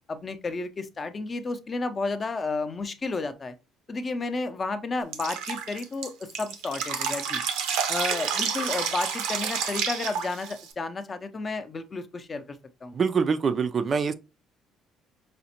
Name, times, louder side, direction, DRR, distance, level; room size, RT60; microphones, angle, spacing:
voice 1, 0.1-3.5 3.9-7.4 7.9-13.0, left 3 dB, 25° left, 0.5 m, -32 dB
Drip, 5.1-10.7, right 7 dB, 90° right, 0.7 m, -29 dB
voice 2, 12.9-14.1, right 5 dB, 35° right, 0.3 m, -24 dB
4.9 x 2.1 x 2.8 m
cardioid pair, 120°, 0 cm